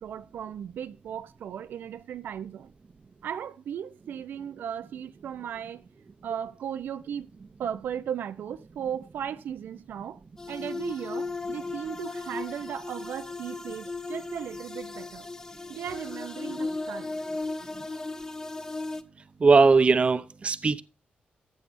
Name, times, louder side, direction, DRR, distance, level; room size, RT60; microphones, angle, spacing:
voice 1, 0.0-2.7 3.2-5.8 6.2-7.3 7.6-10.2 10.5-15.3 15.7-17.1, right 9 dB, 90° right, 0.6 m, -36 dB
sound 1, 10.4-19.0, left 3 dB, 20° left, 0.8 m, -36 dB
voice 2, 19.4-20.8, right 4 dB, 35° right, 0.7 m, -19 dB
14.0 x 8.6 x 2.6 m
cardioid pair, 105°, 3 cm